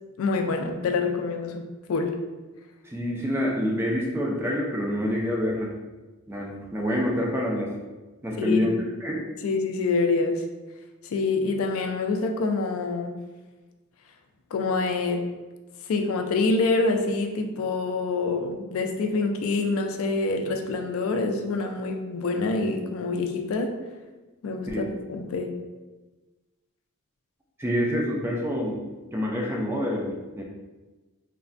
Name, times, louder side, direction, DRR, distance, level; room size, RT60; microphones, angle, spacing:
voice 1, 0.2-2.2 8.4-8.7 9.4-10.4 11.1-13.2 14.5-15.2 15.9-23.8 24.4-25.5, left 3 dB, 70° left, 5 dB, 0.3 m, -26 dB
voice 2, 2.8-5.7 6.3-7.7 8.2-9.3 24.7-24.8 27.6-28.8 29.1-30.4, equal, 10° right, -2 dB, 0.3 m, -27 dB
3.2 x 2.1 x 2.5 m, 1.2 s
head